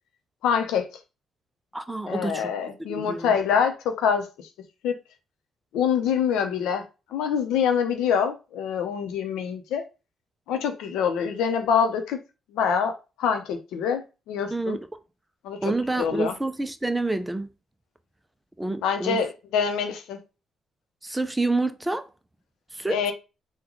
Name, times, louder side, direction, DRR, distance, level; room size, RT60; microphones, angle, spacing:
voice 1, 0.4-0.9 2.1-4.3 4.8-4.9 5.7-6.8 7.1-9.9 10.5-12.2 12.5-14.8 15.4-15.6 16.0-16.3 18.8-20.2 22.9-23.1, left 7 dB, 90° left, 0.7 m, -25 dB
voice 2, 1.7-2.5 2.9-3.3 14.5-14.8 15.6-17.5 18.6-19.2 21.0-22.1 22.7-23.1, right 2 dB, 10° right, 0.4 m, -28 dB
3.8 x 2.2 x 3.0 m
cardioid pair, 90°, 0 cm